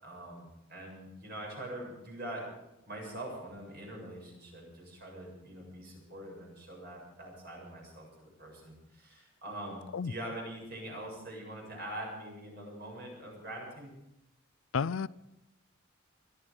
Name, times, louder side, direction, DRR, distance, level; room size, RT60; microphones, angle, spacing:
voice 1, 0.0-2.4 2.9-14.0, right 1 dB, 50° right, 0 dB, 7.3 m, -44 dB
voice 2, 14.7-15.1, left 5 dB, 80° left, 19 dB, 0.5 m, -31 dB
21.5 x 13.0 x 5.0 m, 0.89 s
head